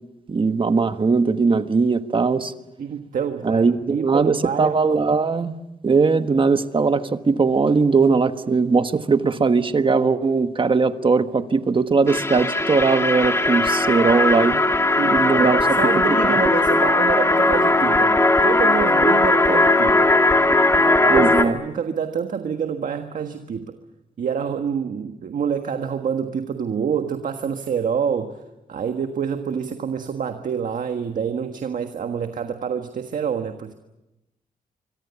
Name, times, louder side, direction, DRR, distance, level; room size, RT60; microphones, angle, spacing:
voice 1, 0.3-2.5 3.4-5.6 5.8-14.6 15.0-16.5 21.1-21.6, right 4 dB, 35° right, 9 dB, 1.4 m, -20 dB
voice 2, 2.8-4.9 15.0-20.1 20.8-23.8 24.2-28.4 28.7-33.7, right 7 dB, 65° right, 6 dB, 1.6 m, -27 dB
sound 1, 12.1-21.5, left 2 dB, 20° left, 2.2 m, -18 dB
27.0 x 24.5 x 7.1 m, 0.94 s
cardioid pair, 95°, 15 cm